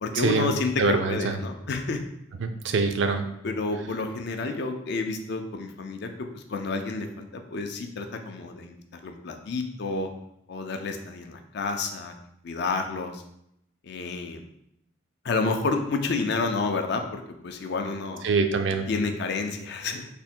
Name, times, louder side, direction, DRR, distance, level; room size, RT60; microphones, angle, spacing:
voice 1, 0.0-2.0 3.4-8.8 9.0-10.1 10.5-12.1 12.4-13.2 13.8-14.5 15.2-18.2 18.9-20.1, left 3 dB, 55° left, 5 dB, 0.4 m, -30 dB
voice 2, 0.8-1.4 2.4-3.2 18.2-18.9, right 4 dB, 65° right, 7 dB, 0.4 m, -24 dB
3.4 x 2.2 x 4.2 m, 0.77 s
head